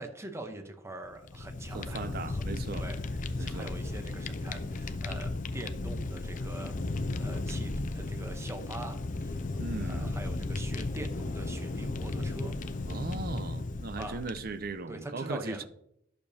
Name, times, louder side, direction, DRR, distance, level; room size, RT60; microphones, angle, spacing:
voice 1, 0.0-2.4 2.7-6.7 7.2-9.5 9.8-12.6 14.0-14.2 14.9-15.7, right 2 dB, 15° right, 0.8 m, -43 dB
Fire, 1.1-14.7, left 2 dB, 40° left, 0.5 m, -35 dB
voice 2, 1.7-2.9 3.4-3.7 9.6-10.1 12.9-15.7, right 3 dB, 50° right, 0.6 m, -38 dB
11.0 x 6.7 x 2.7 m
head